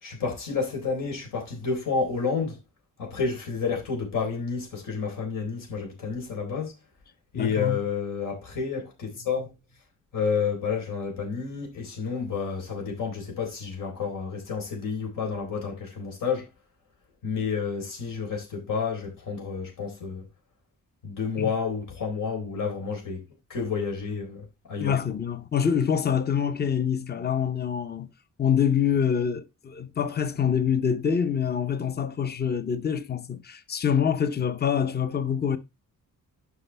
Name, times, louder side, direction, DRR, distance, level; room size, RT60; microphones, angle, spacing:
voice 1, 0.0-2.6 3.0-6.7 7.3-9.5 10.1-16.4 17.2-20.2 21.0-23.2 23.5-24.9, left 5 dB, 80° left, 3.9 m, -30 dB
voice 2, 7.3-7.8 21.4-21.5 24.8-28.1 28.4-35.6, left 7 dB, 30° left, 0.7 m, -25 dB
9.6 x 6.1 x 3.3 m
wide cardioid pair, 165°, 32 cm